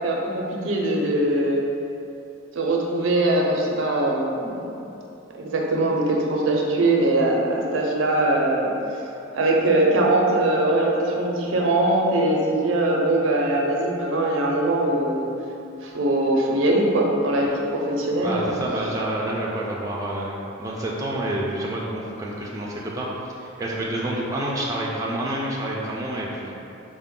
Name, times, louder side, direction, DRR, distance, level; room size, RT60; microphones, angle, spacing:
voice 1, 0.0-1.6 2.5-4.7 5.4-8.7 9.3-15.3 15.8-18.5, right 1 dB, 85° right, -1 dB, 0.6 m, -21 dB
voice 2, 18.2-23.1 23.4-26.5, right 1 dB, 15° right, -4 dB, 0.3 m, -28 dB
4.6 x 2.1 x 3.7 m, 2.8 s
head